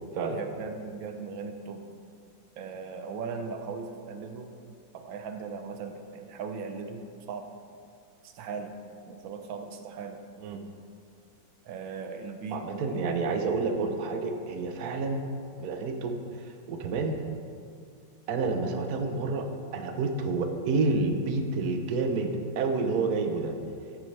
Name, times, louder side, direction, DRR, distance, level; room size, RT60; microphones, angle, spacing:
voice 1, 0.3-1.9 2.6-4.5 4.9-7.5 8.2-8.7 9.1-10.2 11.6-12.7, right 5 dB, 90° right, 6 dB, 1.5 m, -38 dB
voice 2, 12.5-15.2 15.6-16.2 16.7-17.1 18.3-19.4 19.7-23.6, right 3 dB, 60° right, 5 dB, 1.3 m, -29 dB
14.0 x 9.8 x 3.3 m, 2.3 s
omnidirectional pair, 2.0 m